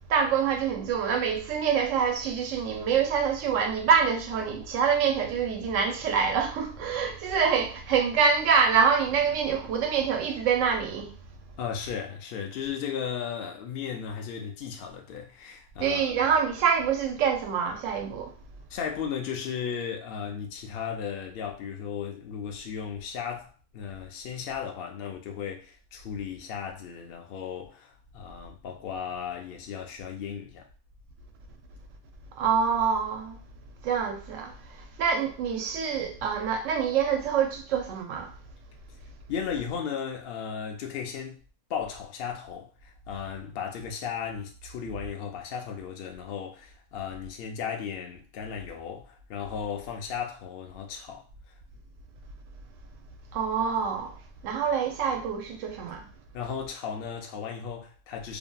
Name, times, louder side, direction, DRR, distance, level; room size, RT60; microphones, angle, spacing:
voice 1, 0.1-11.1 15.8-18.3 32.4-33.4 33.8-38.3 53.3-54.2 54.4-56.1, right 6 dB, 70° right, 0.9 m, -26 dB
voice 2, 11.6-16.1 18.7-30.7 39.3-41.4 41.7-51.3 56.3-58.4, left 7 dB, 70° left, 0.5 m, -35 dB
2.8 x 2.6 x 2.2 m
omnidirectional pair, 1.5 m